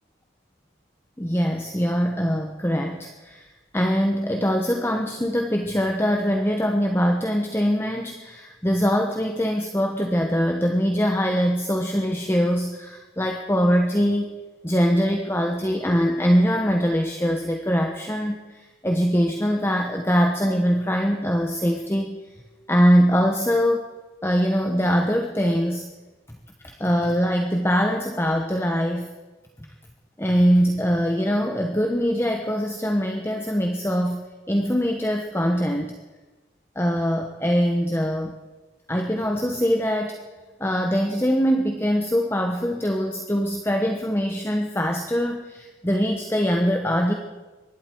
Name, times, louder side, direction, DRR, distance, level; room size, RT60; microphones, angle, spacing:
voice 1, 1.2-3.5 3.7-14.4 14.6-22.2 22.7-23.9 24.2-25.9 26.6-29.1 30.2-36.0 36.8-38.3 38.9-40.2 40.6-47.1, equal, 10° left, 2 dB, 1.0 m, -22 dB
25.0 x 12.0 x 4.6 m, 1.2 s
head